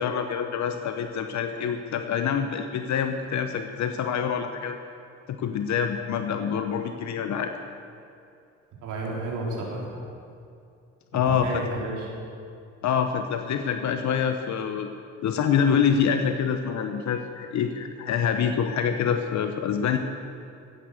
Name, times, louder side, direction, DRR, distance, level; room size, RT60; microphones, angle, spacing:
voice 1, 0.0-4.8 5.3-7.5 11.1-11.6 12.8-14.9 15.2-20.0, left 7 dB, 70° left, 6 dB, 1.0 m, -26 dB
voice 2, 8.8-10.0 11.1-12.1, right 2 dB, 85° right, -2 dB, 3.5 m, -32 dB
16.0 x 9.1 x 6.6 m, 2.5 s
cardioid pair, 90°, 30 cm